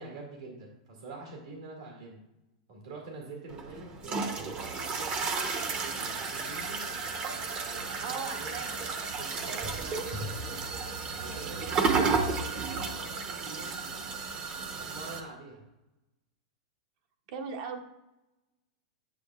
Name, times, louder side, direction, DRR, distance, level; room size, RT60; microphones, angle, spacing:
voice 1, 0.0-2.2 2.7-6.8 7.6-8.6 9.1-10.2 11.2-14.1 14.7-15.7, right 3 dB, 75° right, 0 dB, 2.0 m, -46 dB
sound 1, 3.5-15.2, right 4 dB, 30° right, 0.7 m, -33 dB
voice 2, 8.0-8.8 9.5-9.7 11.3-11.6 17.3-17.8, right 5 dB, 55° right, 5 dB, 0.9 m, -39 dB
8.5 x 6.4 x 2.3 m, 0.95 s
hypercardioid pair, 135°, 3 cm